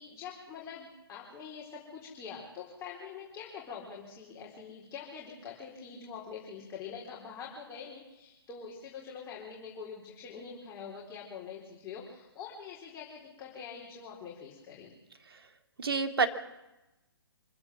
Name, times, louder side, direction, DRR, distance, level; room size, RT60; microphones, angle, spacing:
voice 1, 0.0-14.9, left 6 dB, 20° left, -3 dB, 4.1 m, -45 dB
voice 2, 15.8-16.3, right 5 dB, 70° right, 7 dB, 2.5 m, -28 dB
26.0 x 16.0 x 7.5 m, 0.99 s
figure-of-eight pair, 135°, 13 cm